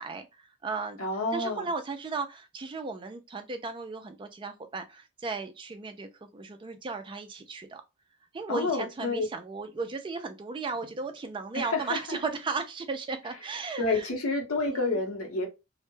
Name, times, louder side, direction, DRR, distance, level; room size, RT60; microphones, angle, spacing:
voice 1, 0.0-1.0 1.3-7.8 8.3-14.1 14.7-15.0, right 4 dB, 25° right, 0.3 m, -35 dB
voice 2, 1.0-1.7 8.5-9.3 11.5-11.8 12.1-12.2 13.8-15.5, left 3 dB, 80° left, 0.7 m, -29 dB
2.2 x 2.0 x 3.0 m
head